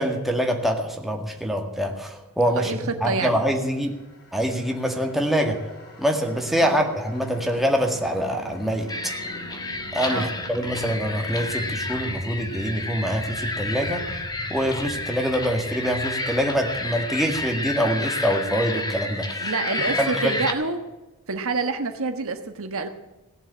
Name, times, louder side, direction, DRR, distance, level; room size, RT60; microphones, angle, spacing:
voice 1, 0.0-3.9 4.3-5.6 6.0-9.1 9.9-14.0 14.5-19.5 20.0-20.3, equal, ahead, 2 dB, 1.9 m, -25 dB
voice 2, 2.5-3.4 6.6-6.8 10.1-10.3 19.4-20.8 21.3-22.9, right 4 dB, 65° right, 7 dB, 1.3 m, -27 dB
sound 1, 3.4-18.6, equal, 55° left, 5.2 m, -42 dB
sound 2, 8.9-20.5, left 2 dB, 20° left, 1.5 m, -30 dB
17.5 x 7.3 x 8.6 m, 1.1 s
head